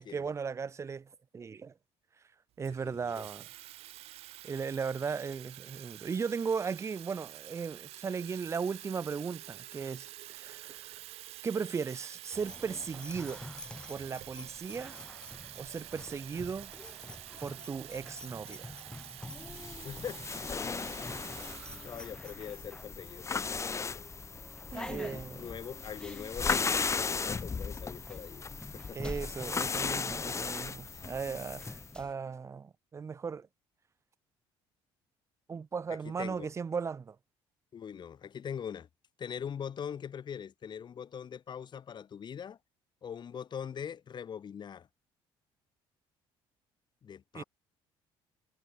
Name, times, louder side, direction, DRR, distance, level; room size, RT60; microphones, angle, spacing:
voice 1, 0.0-1.7 2.6-3.5 4.4-11.0 11.4-13.5 13.9-15.0 15.6-16.7 17.4-18.8 24.7-25.6 28.9-33.5 35.5-37.2 47.3-47.4, right 5 dB, 25° right, 0.6 m, -37 dB
Water tap faucet / Fill (with liquid), 2.6-22.4, right 16 dB, 70° right, 0.7 m, -48 dB
voice 2, 2.8-3.3 19.8-20.9 21.5-24.1 24.7-28.5 28.7-29.1 30.2-30.3 30.9-31.1 36.0-36.5 37.7-38.9 39.2-42.6 43.0-44.9 47.0-47.4, left 8 dB, 45° left, 3.3 m, -42 dB
sound 1, 12.3-32.1, left 1 dB, 10° left, 0.9 m, -48 dB
sound 2, 19.3-31.9, left 5 dB, 25° left, 1.2 m, -36 dB
cardioid pair, 95°, 11 cm